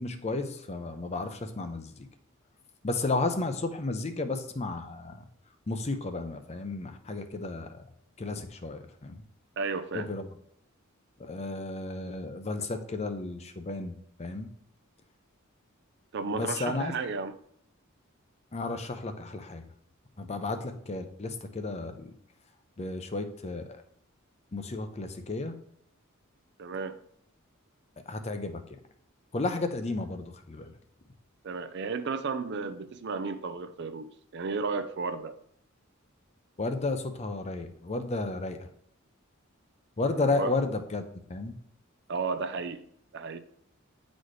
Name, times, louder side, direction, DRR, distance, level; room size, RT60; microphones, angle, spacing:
voice 1, 0.0-1.9 2.8-5.1 5.7-7.7 8.2-9.2 9.9-10.2 11.3-13.9 14.2-14.5 16.3-16.9 18.5-19.6 20.2-20.6 20.9-22.1 22.8-23.6 24.5-25.5 28.1-28.6 29.3-30.7 36.6-38.6 40.0-41.0 41.3-41.5, left 3 dB, 30° left, 0.6 m, -32 dB
voice 2, 9.6-10.1 16.1-17.4 26.6-27.0 31.4-35.4 40.1-40.5 42.1-42.9 43.1-43.4, right 4 dB, 55° right, 0.5 m, -33 dB
9.1 x 4.1 x 3.2 m
head